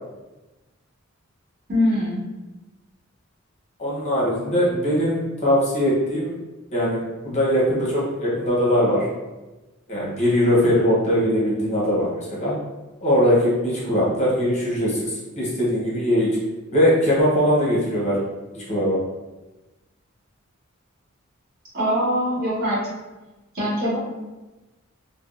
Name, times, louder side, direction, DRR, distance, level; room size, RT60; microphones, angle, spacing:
voice 1, 1.7-2.2 21.7-22.9 23.5-24.0, equal, 50° right, -7 dB, 1.1 m, -22 dB
voice 2, 3.8-6.4 6.7-9.1 9.9-12.5 13.0-16.4 16.7-18.2 18.5-19.0, equal, 35° left, -6 dB, 0.8 m, -21 dB
3.3 x 2.0 x 2.4 m, 1.1 s
head